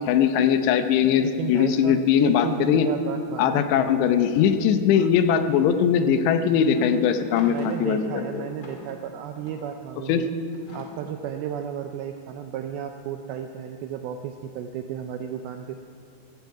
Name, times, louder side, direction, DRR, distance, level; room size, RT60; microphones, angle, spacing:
voice 1, 0.1-2.9 3.4-8.4 10.1-10.2, left 8 dB, 85° left, 9 dB, 3.0 m, -21 dB
voice 2, 1.2-3.7 4.9-5.1 7.5-10.4 10.7-15.8, right 9 dB, 85° right, 6 dB, 2.2 m, -34 dB
sound 1, 6.2-9.8 10.5-11.3, left 1 dB, 35° left, 1.5 m, -44 dB
16.0 x 15.5 x 4.7 m, 2.2 s
omnidirectional pair, 5.0 m